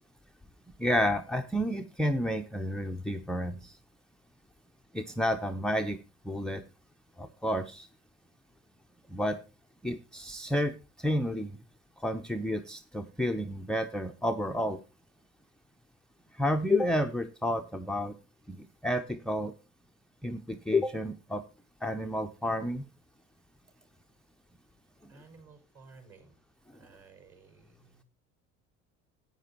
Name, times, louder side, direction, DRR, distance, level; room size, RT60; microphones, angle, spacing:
voice 1, 0.8-3.8 4.9-6.0 6.2-6.6 7.2-7.9 9.1-9.4 9.8-11.5 12.0-14.8 16.4-18.1 18.5-19.5 20.2-21.4 21.8-22.8, left 1 dB, ahead, 9 dB, 0.6 m, -30 dB
voice 2, 25.1-26.3 26.7-28.0, right 4 dB, 40° right, 4 dB, 5.1 m, -55 dB
14.5 x 9.0 x 2.9 m, 0.30 s
hypercardioid pair, 70°, 38 cm